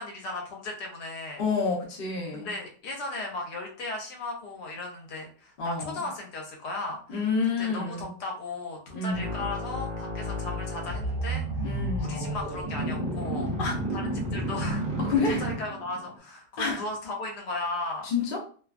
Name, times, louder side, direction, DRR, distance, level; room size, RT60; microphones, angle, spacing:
voice 1, 0.0-1.4 2.3-7.3 7.6-13.5 13.9-14.8 15.4-18.1, left 2 dB, 70° left, 1 dB, 1.2 m, -36 dB
voice 2, 1.4-2.5 5.6-6.0 7.1-8.1 8.9-9.3 11.6-12.3 13.6-13.8 15.0-15.4 16.6-16.8 18.0-18.4, left 4 dB, 50° left, -2 dB, 0.7 m, -28 dB
sound 1, 9.1-16.1, right 1 dB, 45° right, 0.7 m, -31 dB
3.0 x 2.2 x 2.4 m, 0.43 s
omnidirectional pair, 1.8 m